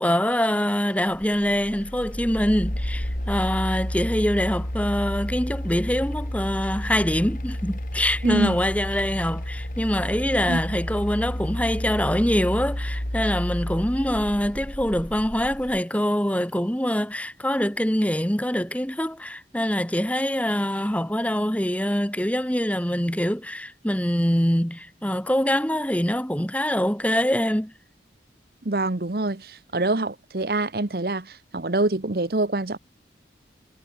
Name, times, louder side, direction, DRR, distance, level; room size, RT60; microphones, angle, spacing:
voice 1, 0.0-27.7, equal, 10° left, 2.5 m, -24 dB
sound 1, 1.1-15.8, equal, 50° left, 3.5 m, -31 dB
voice 2, 8.2-8.6 10.5-10.6 28.6-32.8, right 2 dB, 55° right, 1.1 m, -25 dB
head